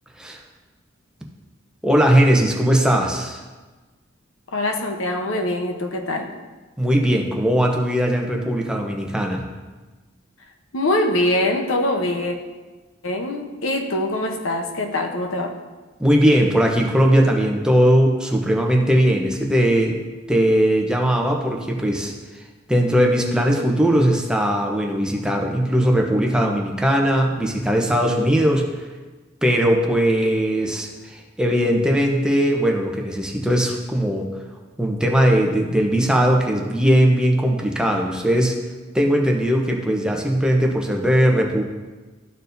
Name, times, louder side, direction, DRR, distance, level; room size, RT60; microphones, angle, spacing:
voice 1, 1.8-3.4 6.8-9.4 16.0-20.0 20.3-22.1 22.7-28.7 29.4-34.3 34.8-38.6 38.9-41.6, equal, 5° right, 0 dB, 0.7 m, -19 dB
voice 2, 4.5-6.3 10.7-12.4 13.0-15.5, left 1 dB, 90° left, 4 dB, 0.8 m, -23 dB
13.0 x 4.5 x 2.6 m, 1.3 s
head